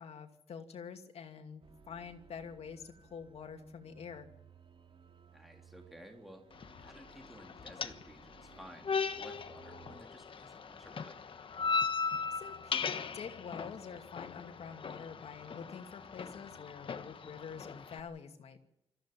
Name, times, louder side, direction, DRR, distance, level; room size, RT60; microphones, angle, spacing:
voice 1, 0.0-4.3 12.3-18.6, left 6 dB, 85° left, 5 dB, 2.6 m, -47 dB
sound 1, 1.6-10.0, right 6 dB, 60° right, 3.0 m, -60 dB
voice 2, 5.3-6.4 6.8-11.3, equal, ahead, 2 dB, 3.4 m, -55 dB
sound 2, 6.5-18.0, left 5 dB, 55° left, 1.2 m, -38 dB
25.5 x 14.5 x 7.7 m, 0.84 s
wide cardioid pair, 120°, 10 cm